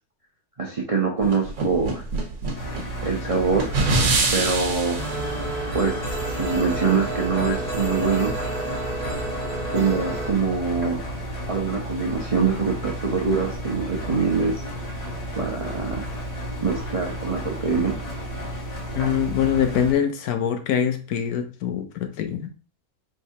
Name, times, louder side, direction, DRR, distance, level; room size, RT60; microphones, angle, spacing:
voice 1, 0.6-2.0 3.0-3.8 4.3-5.0 5.7-6.0 6.3-8.4 9.7-11.0 11.5-14.6 15.4-16.1 16.6-18.0, right 5 dB, 45° right, -2 dB, 0.4 m, -24 dB
sound 1, 1.2-5.1, right 3 dB, 65° right, 1.2 m, -25 dB
Engine, 2.5-19.9, equal, 30° left, 0.8 m, -33 dB
sound 2, 5.0-10.3, right 2 dB, 25° right, 1.0 m, -30 dB
voice 2, 18.9-22.5, left 8 dB, 80° left, 7 dB, 1.2 m, -24 dB
4.7 x 3.2 x 2.7 m, 0.35 s
omnidirectional pair, 1.6 m